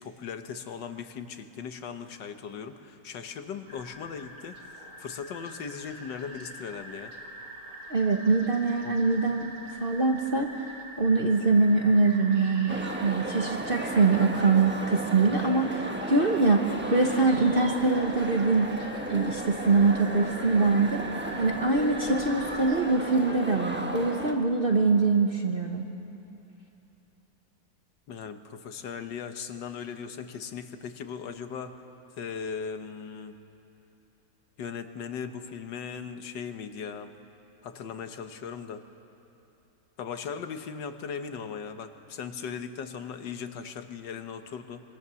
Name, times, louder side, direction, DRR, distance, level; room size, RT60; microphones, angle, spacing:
voice 1, 0.0-4.6 5.0-7.1 28.1-31.7 32.2-33.4 34.6-37.1 37.6-38.8 40.0-44.8, left 6 dB, 90° left, 8 dB, 1.8 m, -38 dB
sound 1, 3.7-22.8, right 2 dB, 80° right, 3.0 m, -44 dB
voice 2, 7.9-9.5 9.8-10.5 11.0-18.7 19.1-21.0 21.4-25.8, right 3 dB, 35° right, 2 dB, 1.1 m, -24 dB
sound 2, 12.7-24.3, right 1 dB, 5° right, 1.1 m, -35 dB
24.5 x 23.5 x 7.0 m, 2.9 s
omnidirectional pair, 1.9 m